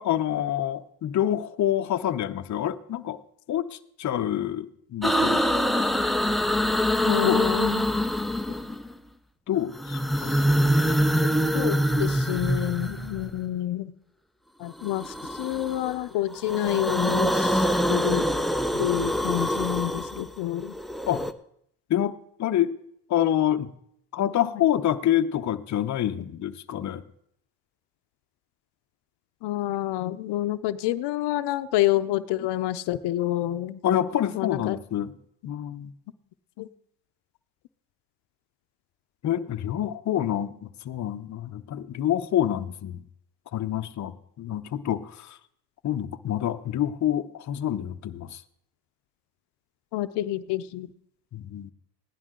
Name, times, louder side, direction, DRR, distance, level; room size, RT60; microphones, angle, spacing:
voice 1, 0.0-3.2 3.5-5.5 7.2-7.4 9.5-10.3 21.1-21.3 21.9-22.8 23.1-23.7 24.1-27.0 33.8-35.2 35.4-35.9 39.2-43.0 43.5-45.4 45.8-48.4 51.3-51.7, left 11 dB, 45° left, 8 dB, 0.7 m, -27 dB
sound 1, 5.0-9.0 9.7-13.4 14.8-16.0 16.3-21.3, equal, ahead, 0.4 m, -25 dB
voice 2, 7.1-7.9 11.5-13.9 14.6-18.3 18.7-20.7 29.4-33.8 34.3-34.8 36.6-36.7 49.9-50.9, left 14 dB, 85° left, 11 dB, 0.6 m, -28 dB
16.0 x 11.0 x 3.7 m, 0.70 s
cardioid pair, 110°, 40 cm